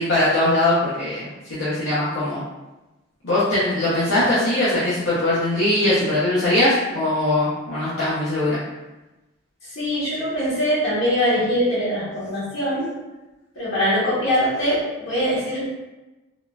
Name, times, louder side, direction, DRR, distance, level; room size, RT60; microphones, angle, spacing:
voice 1, 0.0-2.4 3.2-8.6, left 1 dB, 75° left, -11 dB, 0.8 m, -21 dB
voice 2, 9.7-12.9 13.5-15.7, equal, 90° left, -10 dB, 1.2 m, -22 dB
3.6 x 2.3 x 2.3 m, 1.1 s
head